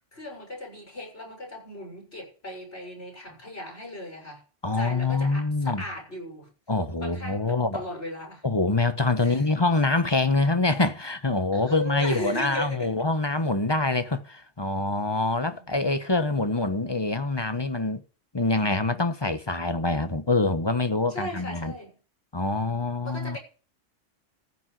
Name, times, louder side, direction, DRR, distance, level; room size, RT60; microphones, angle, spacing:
voice 1, 0.1-4.4 4.7-6.5 7.0-8.5 9.2-9.4 11.5-13.1 15.4-15.7 21.1-22.0 23.0-23.4, left 1 dB, 55° left, 6.8 m, -37 dB
voice 2, 4.6-5.8 6.7-7.8 8.4-18.0 18.3-21.7 22.3-23.4, left 3 dB, 20° left, 1.1 m, -25 dB
15.0 x 6.3 x 9.3 m
omnidirectional pair, 1.3 m